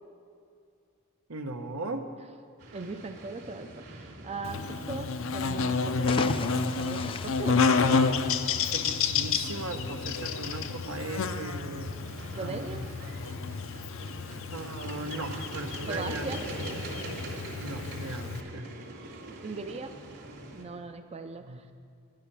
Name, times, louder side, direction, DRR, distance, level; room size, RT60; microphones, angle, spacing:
voice 1, 1.3-2.0 8.7-11.9 12.4-12.8 14.5-16.3 17.6-18.7 21.5-21.7, right 2 dB, 85° right, 5 dB, 1.0 m, -38 dB
sound 1, 2.6-20.6, right 2 dB, 65° right, 2.8 m, -44 dB
voice 2, 2.7-7.7 12.3-12.9 15.9-16.4 18.9-20.0 20.5-21.7, right 3 dB, 30° right, 7 dB, 0.5 m, -40 dB
Buzz, 4.4-18.4, left 4 dB, 65° left, 0.6 m, -30 dB
sound 2, 6.0-8.5, left 4 dB, 25° left, 0.4 m, -36 dB
11.0 x 10.5 x 6.1 m, 2.4 s
head